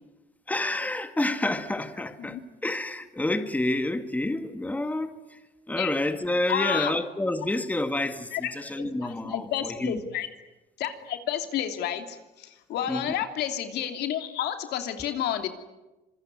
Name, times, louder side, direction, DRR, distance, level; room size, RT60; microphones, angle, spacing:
voice 1, 0.5-5.4 5.7-10.0 12.9-13.1, left 1 dB, 10° left, 1.9 m, -29 dB
voice 2, 6.5-6.9 8.3-8.5 8.8-10.3 10.8-15.5, left 10 dB, 75° left, 2.9 m, -30 dB
26.0 x 22.5 x 9.8 m
cardioid pair, 110°, 17 cm